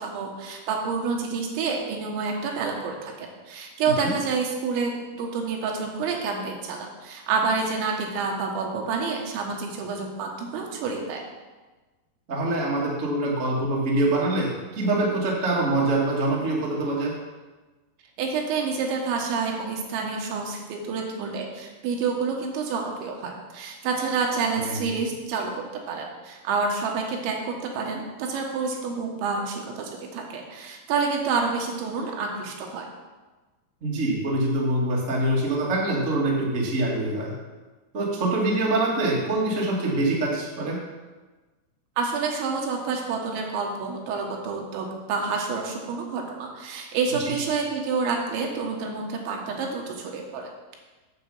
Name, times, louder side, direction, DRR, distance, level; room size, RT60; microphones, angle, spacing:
voice 1, 0.0-11.2 18.2-32.9 42.0-50.5, right 4 dB, 85° right, 1 dB, 3.7 m, -28 dB
voice 2, 12.3-17.1 24.5-24.8 33.8-37.3 37.9-40.8 47.2-47.3, right 2 dB, 65° right, -4 dB, 0.7 m, -24 dB
8.5 x 7.6 x 5.4 m, 1.3 s
omnidirectional pair, 5.1 m